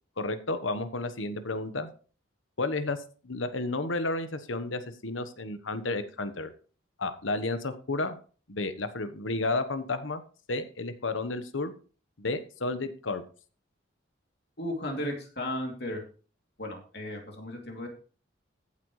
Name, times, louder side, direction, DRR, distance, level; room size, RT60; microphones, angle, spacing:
voice 1, 0.2-1.9 2.6-3.0 3.2-6.5 7.0-8.2 8.5-10.2 10.5-11.7 12.2-13.2, left 2 dB, 90° left, 10 dB, 1.2 m, -32 dB
voice 2, 14.6-16.0 16.6-17.9, left 1 dB, 55° left, 1 dB, 3.0 m, -35 dB
15.0 x 8.5 x 3.2 m, 0.38 s
head